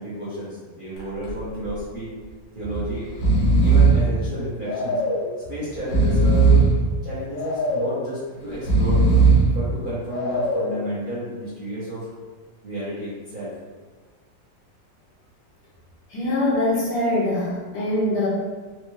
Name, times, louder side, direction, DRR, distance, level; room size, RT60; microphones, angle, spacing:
voice 1, 0.0-2.2 2.5-3.1 3.6-5.0 5.5-6.7 7.0-9.1 9.5-12.1 12.6-13.5, equal, 35° right, -10 dB, 1.0 m, -31 dB
Breathing, 1.0-1.3 1.6-1.7 2.6-2.8 3.1-4.1 4.7-5.3 5.8-6.8 7.4-8.0 8.5-9.5 10.1-10.7, right 3 dB, 90° left, 1.8 m, -18 dB
voice 2, 16.1-18.3, left 1 dB, 70° left, -5 dB, 1.4 m, -23 dB
4.4 x 2.4 x 3.3 m, 1.4 s
omnidirectional pair, 1.9 m